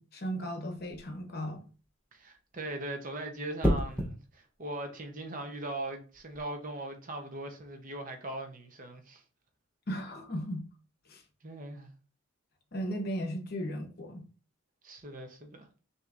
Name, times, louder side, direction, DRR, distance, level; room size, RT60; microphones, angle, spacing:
voice 1, 0.0-1.6 9.9-10.7 11.1-11.2 12.7-14.2, equal, 50° left, 0.9 m, -36 dB
sound 1, 0.8-1.1 3.6-4.2 6.1-6.4, equal, 5° left, 0.7 m, -29 dB
voice 2, 2.1-9.2 11.4-11.9 14.8-15.7, right 1 dB, 40° right, 0.7 m, -40 dB
6.2 x 2.8 x 2.5 m
head